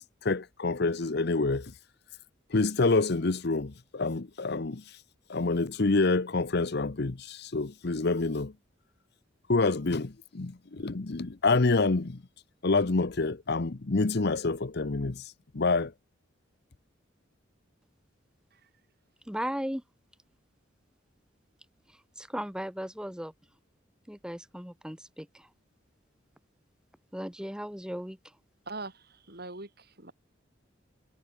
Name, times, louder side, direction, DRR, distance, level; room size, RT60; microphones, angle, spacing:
voice 1, 0.0-1.7 2.5-5.0 5.3-8.5 9.5-12.2 12.6-15.9, left 3 dB, 55° left, 0.8 m, -27 dB
voice 2, 19.3-19.8 22.2-23.3 24.1-25.5 27.1-28.2, equal, 5° right, 3.0 m, -36 dB
voice 3, 28.7-30.1, right 3 dB, 55° right, 5.2 m, -42 dB
head